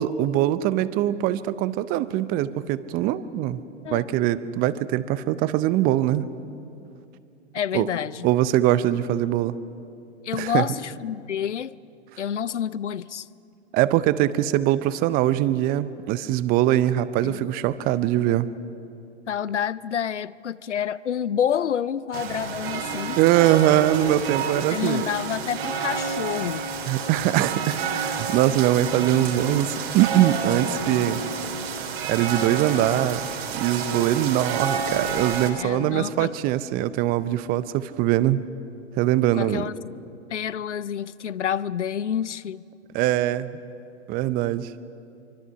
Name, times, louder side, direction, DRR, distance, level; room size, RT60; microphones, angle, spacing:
voice 1, 0.0-3.6 3.9-6.3 7.7-7.9 8.2-9.6 10.3-10.6 13.7-18.5 23.2-25.0 26.9-31.2 32.1-33.2 33.5-38.4 39.0-39.6 42.9-43.6 44.1-44.7, right 13 dB, 25° right, 0.7 m, -22 dB
voice 2, 7.5-8.3 10.2-11.8 12.2-13.3 17.2-17.5 19.3-23.5 24.7-26.6 35.6-36.3 39.3-39.8 40.3-42.6, left 8 dB, 80° left, 0.7 m, -28 dB
sound 1, 22.1-35.5, right 5 dB, 60° right, 3.1 m, -29 dB
24.5 x 24.5 x 5.7 m
figure-of-eight pair, 110°, 35 cm